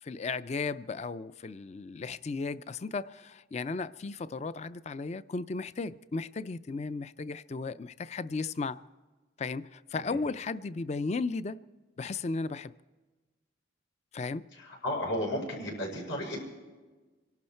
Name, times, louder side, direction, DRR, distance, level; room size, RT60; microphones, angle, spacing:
voice 1, 0.0-8.8 9.4-11.6 12.0-12.7 14.1-14.4, left 4 dB, 35° left, 0.4 m, -35 dB
voice 2, 14.5-16.4, left 1 dB, 85° left, 5.7 m, -34 dB
25.0 x 12.0 x 4.4 m
head